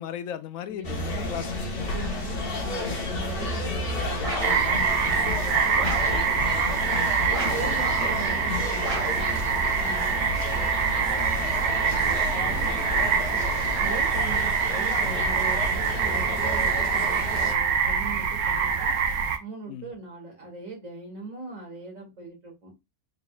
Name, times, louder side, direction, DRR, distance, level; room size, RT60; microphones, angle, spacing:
voice 1, 0.0-1.5 7.5-7.6 10.1-10.4 19.7-19.9, left 9 dB, 75° left, 1.0 m, -36 dB
voice 2, 0.6-1.1 1.8-6.9 7.3-9.3 9.7-13.4 13.7-19.0 19.4-22.7, right 3 dB, 65° right, 2.5 m, -41 dB
sound 1, 0.8-17.5, left 2 dB, 45° left, 1.1 m, -32 dB
sound 2, 4.2-4.7 5.8-6.2 7.3-7.8 8.8-9.3, right 2 dB, 25° right, 2.3 m, -32 dB
sound 3, 4.4-19.4, right 6 dB, 90° right, 1.2 m, -25 dB
4.2 x 4.0 x 2.3 m
omnidirectional pair, 1.5 m